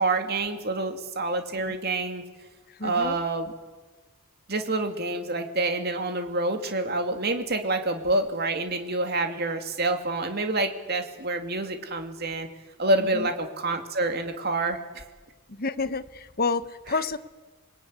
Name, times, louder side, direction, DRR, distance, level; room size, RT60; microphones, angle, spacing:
voice 1, 0.0-2.2 2.8-3.5 4.5-12.5 12.8-15.0, right 2 dB, 45° right, 5 dB, 2.6 m, -27 dB
voice 2, 2.7-3.2 13.1-13.3 15.5-17.2, left 4 dB, 45° left, 12 dB, 1.1 m, -29 dB
27.0 x 21.0 x 9.7 m, 1.3 s
head